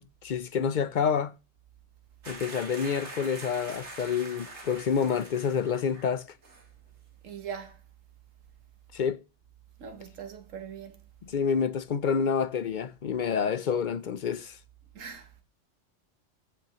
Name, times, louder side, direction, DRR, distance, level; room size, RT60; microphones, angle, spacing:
voice 1, 0.0-1.3 2.3-6.2 8.9-9.2 11.2-14.6, left 6 dB, 55° left, 0.5 m, -28 dB
sound 1, 2.2-6.2 6.4-6.7, right 2 dB, 60° right, 2.2 m, -44 dB
voice 2, 7.2-7.8 9.8-11.0 14.9-15.3, right 7 dB, 85° right, 1.6 m, -41 dB
15.0 x 5.9 x 3.0 m
omnidirectional pair, 1.3 m